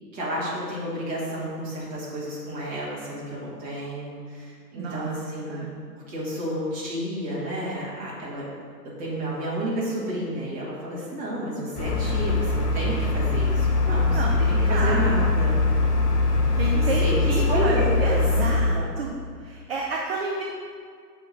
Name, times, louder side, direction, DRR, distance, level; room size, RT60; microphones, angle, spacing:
voice 1, 0.1-8.5 8.8-15.5 16.6-18.2 18.6-18.8, right 1 dB, 15° right, -7 dB, 1.8 m, -31 dB
voice 2, 4.8-5.1 5.4-5.7 14.1-15.3 16.6-19.1 19.4-20.4, right 3 dB, 35° right, -1 dB, 0.7 m, -30 dB
sound 1, 11.8-18.6, left 3 dB, 70° left, 1.2 m, -22 dB
6.5 x 3.7 x 5.8 m, 2.1 s
hypercardioid pair, 135°, 50 cm